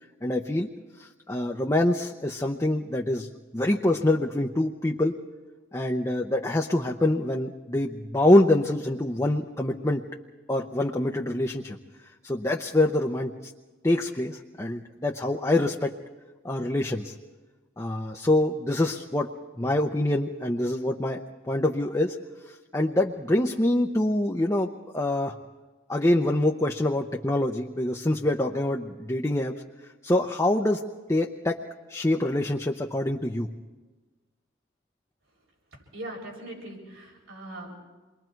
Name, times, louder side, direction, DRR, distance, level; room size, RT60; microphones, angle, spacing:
voice 1, 0.2-0.7 1.0-3.3 3.5-5.2 5.7-10.0 10.5-11.8 12.2-13.3 13.8-15.9 16.4-17.1 17.8-19.3 19.6-22.2 22.5-25.3 25.9-29.5 30.0-30.8 31.1-31.6 31.9-33.5, left 1 dB, 15° left, 0 dB, 0.7 m, -25 dB
voice 2, 35.9-37.7, right 1 dB, 85° right, -2 dB, 7.7 m, -40 dB
28.0 x 22.0 x 4.6 m, 1.3 s
head